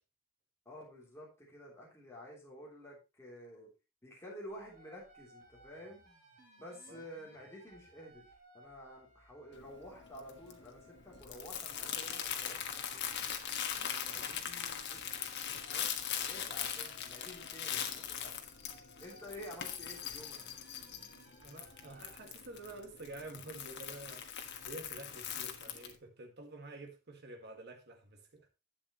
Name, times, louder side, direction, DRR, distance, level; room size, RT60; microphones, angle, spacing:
voice 1, 0.6-3.7 4.0-6.0 6.6-13.1 13.8-18.4 19.0-20.5, equal, 15° left, 3.3 m, -51 dB
sound 1, 4.5-22.1, right 1 dB, 40° right, 5.8 m, -62 dB
Crumpling crinkling, 9.5-25.9, left 8 dB, 55° left, 1.4 m, -41 dB
voice 2, 21.4-24.3 24.6-28.5, right 2 dB, 55° right, 1.9 m, -49 dB
11.5 x 8.4 x 3.1 m
head